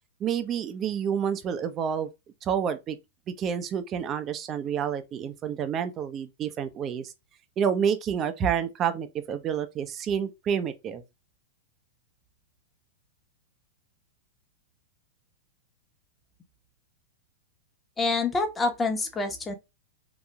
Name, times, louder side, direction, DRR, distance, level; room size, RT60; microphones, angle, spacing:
voice 1, 0.2-2.1 2.4-3.0 3.4-7.1 7.6-11.0, right 8 dB, 30° right, 0.6 m, -29 dB
voice 2, 18.0-19.5, left 3 dB, 15° left, 1.1 m, -27 dB
4.0 x 2.7 x 2.2 m
hypercardioid pair, 105°, 0 cm